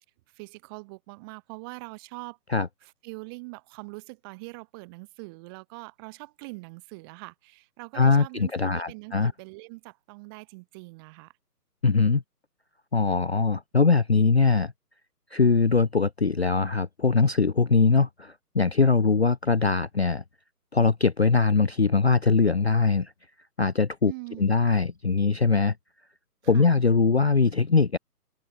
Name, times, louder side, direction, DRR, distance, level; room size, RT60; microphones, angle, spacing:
voice 1, 0.3-2.4 2.8-11.3 24.1-24.6 26.4-26.7, right 28 dB, 15° right, 2.6 m, -43 dB
voice 2, 7.9-9.3 11.8-12.2 12.9-14.7 15.3-20.2 20.7-23.1 23.6-24.1 24.4-25.8 26.5-28.0, left 4 dB, 45° left, 0.5 m, -22 dB
open air
figure-of-eight pair, 150°, 48 cm